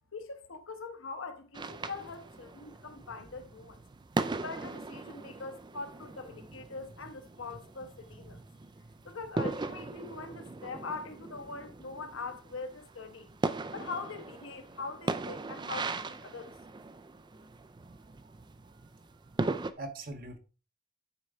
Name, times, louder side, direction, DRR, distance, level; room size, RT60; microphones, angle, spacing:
voice 1, 0.1-3.8 4.4-8.4 9.0-13.3 13.7-16.5, left 4 dB, 60° left, 1.0 m, -42 dB
sound 1, 1.5-19.7, right 3 dB, 20° right, 0.3 m, -39 dB
voice 2, 19.8-20.4, right 2 dB, 40° right, 0.8 m, -43 dB
9.6 x 4.4 x 3.6 m
head